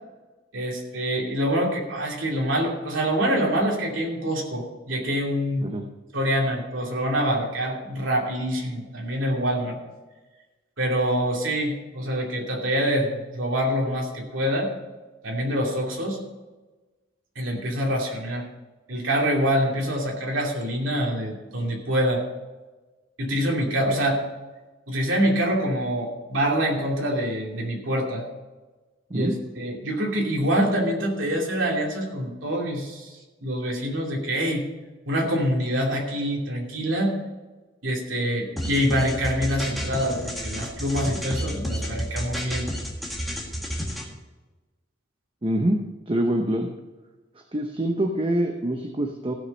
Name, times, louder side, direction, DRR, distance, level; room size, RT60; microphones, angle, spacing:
voice 1, 0.5-5.7 6.1-9.8 10.8-14.7 15.2-16.2 17.4-18.5 18.9-22.2 23.2-24.2 24.9-28.3 29.1-34.7 35.1-37.1 37.8-42.7, equal, 90° right, -1 dB, 2.7 m, -25 dB
sound 1, 38.6-44.0, equal, ahead, 1.7 m, -30 dB
voice 2, 45.4-45.8 46.1-46.7 47.5-49.3, right 1 dB, 30° right, 3 dB, 0.8 m, -25 dB
15.5 x 6.6 x 5.3 m, 1.2 s
head